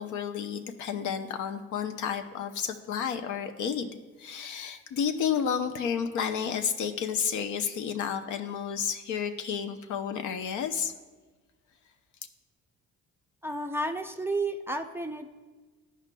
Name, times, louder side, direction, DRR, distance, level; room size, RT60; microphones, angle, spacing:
voice 1, 0.0-10.9, left 7 dB, 80° left, 7 dB, 0.6 m, -31 dB
voice 2, 13.4-15.3, right 2 dB, 10° right, 4 dB, 0.4 m, -31 dB
13.5 x 4.9 x 2.2 m, 1.3 s
cardioid pair, 90°, 30 cm